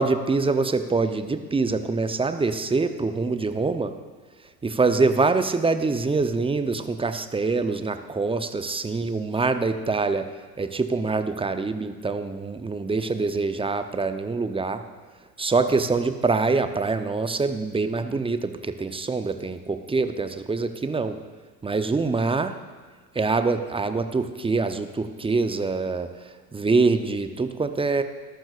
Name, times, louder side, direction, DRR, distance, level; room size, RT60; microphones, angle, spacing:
voice 1, 0.0-3.9 4.6-10.3 10.6-14.8 15.4-21.2 21.6-22.6 23.1-26.1 26.5-28.0, right 3 dB, 10° right, 9 dB, 0.7 m, -24 dB
20.5 x 12.0 x 2.5 m, 1.4 s
hypercardioid pair, 75°, 47 cm